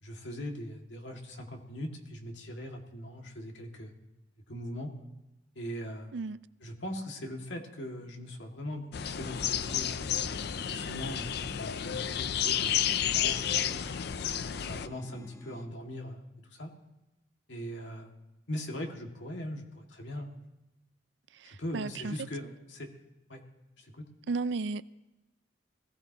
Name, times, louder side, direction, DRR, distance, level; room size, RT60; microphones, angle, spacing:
voice 1, 0.0-3.9 4.5-4.9 5.6-6.2 6.6-10.1 10.7-12.9 13.1-13.9 14.4-16.7 17.5-18.2 18.5-20.4 21.4-22.9 23.3-23.4 23.8-24.1, equal, 85° left, 2.2 m, -40 dB
sound 1, 8.9-14.9, left 9 dB, 60° left, 0.5 m, -31 dB
sound 2, 9.1-15.6, left 1 dB, 15° left, 0.8 m, -52 dB
voice 2, 21.3-22.1 24.3-24.8, right 3 dB, 75° right, 0.4 m, -34 dB
21.0 x 15.5 x 3.0 m
head